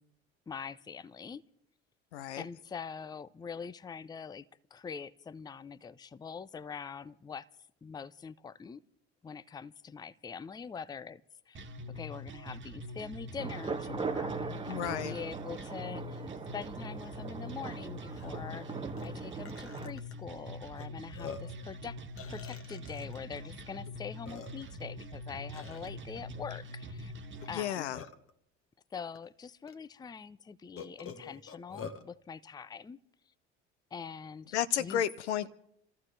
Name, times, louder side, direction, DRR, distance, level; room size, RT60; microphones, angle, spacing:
voice 1, 0.5-1.4 2.4-4.4 4.7-7.5 7.8-8.8 9.2-11.2 11.5-11.6 11.9-16.3 16.5-22.0 22.3-27.1 27.5-27.9 28.9-33.0 33.9-35.0, left 6 dB, 10° left, 0.5 m, -44 dB
voice 2, 2.1-2.4 14.7-15.1 27.5-28.0 34.5-35.6, left 10 dB, 75° left, 0.8 m, -32 dB
sound 1, 11.5-27.5, left 1 dB, 35° right, 1.6 m, -44 dB
sound 2, 13.4-19.9, right 5 dB, 15° right, 0.9 m, -40 dB
Burping eructation, 17.7-17.8 18.1-18.3 19.0-19.1 19.4-20.1 20.8-20.9 21.1-21.6 22.2-23.2 23.9-24.0 24.2-24.8 25.5-25.9 27.4-28.3 29.1-29.2 29.7-29.8 30.8-32.0, left 6 dB, 40° left, 1.6 m, -46 dB
29.0 x 14.5 x 3.3 m
figure-of-eight pair, 65°, 35 cm